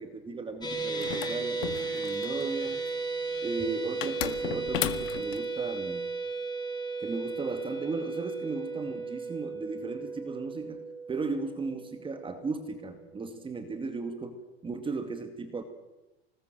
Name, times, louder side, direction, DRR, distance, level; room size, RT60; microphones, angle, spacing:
voice 1, 0.0-2.8 3.4-6.1 7.0-10.8 11.1-15.6, right 3 dB, 15° right, 7 dB, 2.2 m, -36 dB
sound 1, 0.6-12.9, right 4 dB, 15° left, 5.6 m, -35 dB
sound 2, 1.0-2.4 4.0-5.4, left 15 dB, 70° left, 1.9 m, -34 dB
26.5 x 20.0 x 7.7 m, 1.0 s
supercardioid pair, 140°, 30 cm